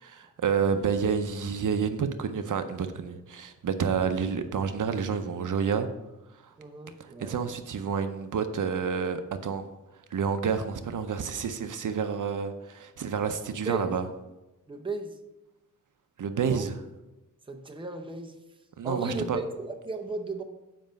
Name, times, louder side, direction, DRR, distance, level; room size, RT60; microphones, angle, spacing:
voice 1, 0.0-5.9 6.4-6.5 7.0-9.7 10.1-14.1 16.2-16.8 18.8-19.4, right 6 dB, 70° right, 9 dB, 0.6 m, -29 dB
voice 2, 6.6-7.3 13.7-13.9 14.7-15.2 16.4-16.6 17.5-18.3 18.8-20.4, right 2 dB, 15° right, 3 dB, 0.6 m, -35 dB
7.6 x 5.1 x 5.1 m, 1.0 s
wide cardioid pair, 140°, 32 cm